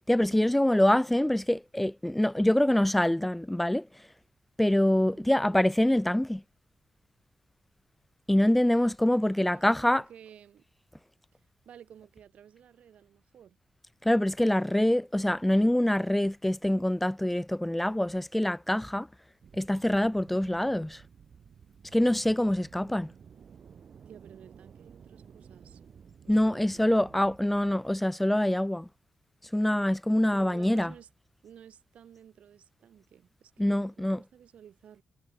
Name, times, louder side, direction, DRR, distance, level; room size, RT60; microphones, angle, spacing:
voice 1, 0.1-3.8 4.6-6.4 8.3-10.0 14.0-19.1 19.6-21.0 21.9-23.1 26.3-28.9 29.5-30.9 33.6-34.2, left 1 dB, 5° left, 0.5 m, -25 dB
voice 2, 4.9-5.3 9.1-10.6 11.7-13.6 24.1-25.8 26.2-27.4 30.3-31.1 31.4-35.0, right 9 dB, 85° right, 4.2 m, -53 dB
sound 1, 19.4-27.4, right 7 dB, 55° right, 3.6 m, -53 dB
wide cardioid pair, 155°, 2 cm